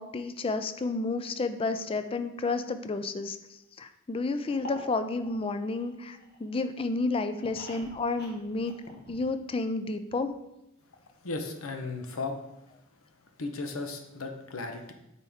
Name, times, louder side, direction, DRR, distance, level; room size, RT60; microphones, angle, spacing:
voice 1, 0.0-3.4 3.8-8.7 9.1-10.3, left 3 dB, 25° left, 10 dB, 0.4 m, -31 dB
sound 1, 4.5-6.5 6.9-9.6 9.9-10.0 10.2-10.3, left 1 dB, 50° left, 1.4 m, -46 dB
voice 2, 11.2-12.4 13.4-14.9, left 3 dB, 85° left, 5 dB, 0.9 m, -35 dB
8.7 x 4.4 x 3.5 m, 0.88 s
head